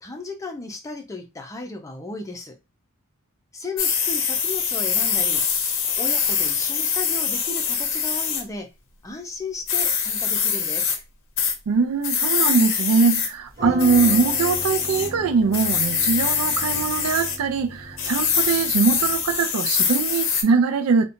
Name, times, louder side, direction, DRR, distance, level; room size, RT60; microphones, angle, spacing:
voice 1, 0.0-2.6 3.5-5.4 6.0-8.7 9.0-10.9 13.6-13.8, left 3 dB, 15° left, 0.5 m, -35 dB
sound 1, 3.8-8.4 9.7-11.0 11.4-11.5 12.0-13.3 13.8-15.1 15.5-17.4 18.0-20.4, left 6 dB, 60° left, 0.6 m, -23 dB
voice 2, 11.7-21.1, right 5 dB, 75° right, 0.4 m, -21 dB
sound 2, 13.5-19.4, equal, 45° right, 0.8 m, -36 dB
2.8 x 2.2 x 2.5 m
head